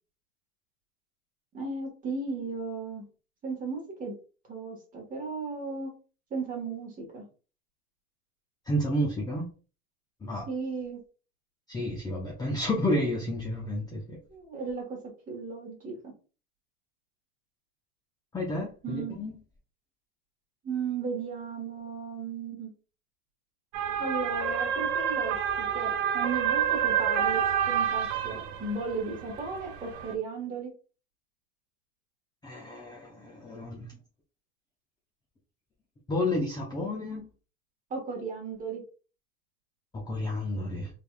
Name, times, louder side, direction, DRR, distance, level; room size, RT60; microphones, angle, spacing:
voice 1, 1.5-3.1 3.4-4.1 4.5-5.9 6.3-7.3 10.4-11.0 14.3-15.0 15.3-16.1 18.8-19.2 20.6-22.7 24.0-30.7 37.9-38.8, right 4 dB, 20° right, 0 dB, 1.7 m, -35 dB
voice 2, 8.7-9.5 10.2-10.5 11.7-14.2 18.3-19.3 32.4-33.9 36.1-37.2 39.9-40.9, left 1 dB, 10° left, -1 dB, 0.6 m, -31 dB
sound 1, 23.7-30.1, right 8 dB, 50° right, 0.7 m, -29 dB
3.4 x 3.3 x 2.3 m, 0.36 s
supercardioid pair, 125°, 39 cm